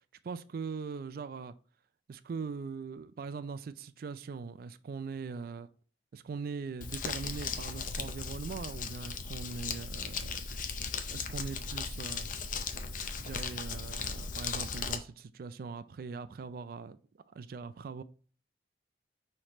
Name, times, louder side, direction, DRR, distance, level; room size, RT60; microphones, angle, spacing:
voice 1, 0.2-1.5 2.1-5.7 6.1-10.3 10.8-12.3 13.2-17.0 17.3-18.0, right 5 dB, 55° right, 0.3 m, -41 dB
Crumpling crinkling, 6.8-15.0, left 5 dB, 50° left, 0.5 m, -37 dB
5.6 x 3.2 x 2.9 m
head